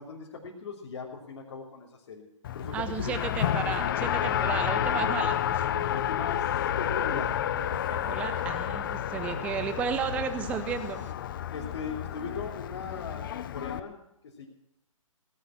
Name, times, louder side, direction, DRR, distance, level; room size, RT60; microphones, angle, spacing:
voice 1, 0.0-2.3 2.5-3.3 4.3-4.5 5.9-7.4 11.5-14.0 14.4-14.5, left 5 dB, 55° left, -5 dB, 3.1 m, -39 dB
Race car auto racing, 2.4-13.8, left 10 dB, 40° left, 0.7 m, -30 dB
voice 2, 2.7-5.6 7.9-11.0, right 6 dB, 5° right, 9 dB, 0.5 m, -33 dB
sound 1, 4.3-11.1, right 5 dB, 60° right, 2.0 m, -46 dB
18.0 x 11.0 x 5.9 m, 0.85 s
hypercardioid pair, 145°, 18 cm